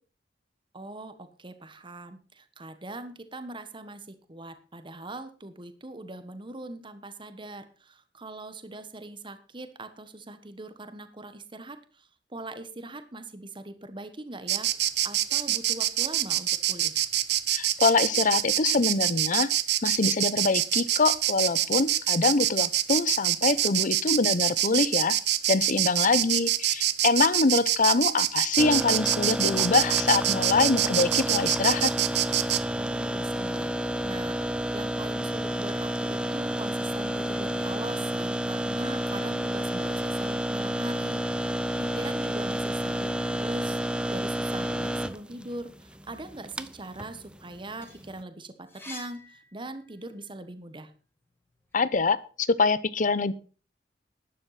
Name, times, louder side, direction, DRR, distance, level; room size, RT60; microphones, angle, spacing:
voice 1, 0.7-16.9 32.8-34.4 34.7-43.8 44.1-50.9, right 2 dB, 25° right, 10 dB, 1.3 m, -41 dB
Insect, 14.5-32.6, right 12 dB, 65° right, 0.9 m, -25 dB
voice 2, 17.5-19.5 19.8-25.2 25.5-31.9 51.7-53.3, left 4 dB, 45° left, 17 dB, 0.7 m, -24 dB
sound 1, 28.6-48.2, equal, 5° right, 0.6 m, -30 dB
sound 2, 47.8-50.2 50.7-52.1, left 2 dB, 15° left, 3.0 m, -48 dB
12.0 x 9.9 x 5.9 m, 0.38 s
head